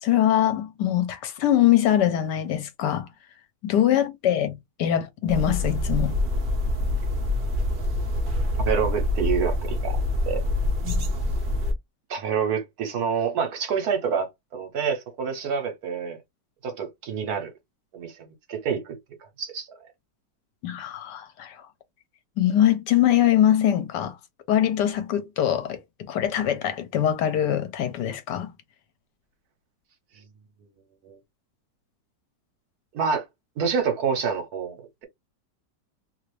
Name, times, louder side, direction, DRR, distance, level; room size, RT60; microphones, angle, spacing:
voice 1, 0.0-3.1 3.6-6.2 10.8-11.1 20.6-21.6 22.4-24.2 24.5-28.5, left 11 dB, 75° left, 1.3 m, -23 dB
sound 1, 5.3-11.7, left 1 dB, 50° right, 0.6 m, -25 dB
voice 2, 8.6-10.4 12.1-16.2 16.6-17.5 17.9-19.0 19.4-19.7 31.0-31.2 32.9-33.2 33.6-35.0, right 6 dB, 65° right, 1.2 m, -27 dB
3.0 x 2.5 x 3.1 m
omnidirectional pair, 1.9 m